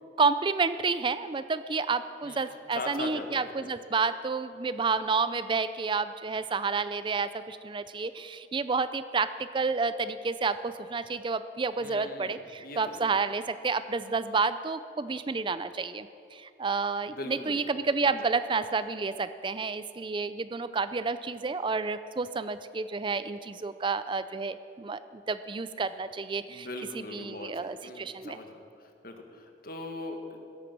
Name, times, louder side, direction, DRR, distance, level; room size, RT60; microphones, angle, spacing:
voice 1, 0.2-26.7 27.1-28.4, right 4 dB, 25° right, 13 dB, 0.4 m, -30 dB
voice 2, 2.7-3.7 11.8-13.0 17.0-18.1 26.5-30.4, left 2 dB, 55° left, 4 dB, 1.8 m, -41 dB
17.0 x 13.5 x 6.1 m, 2.7 s
head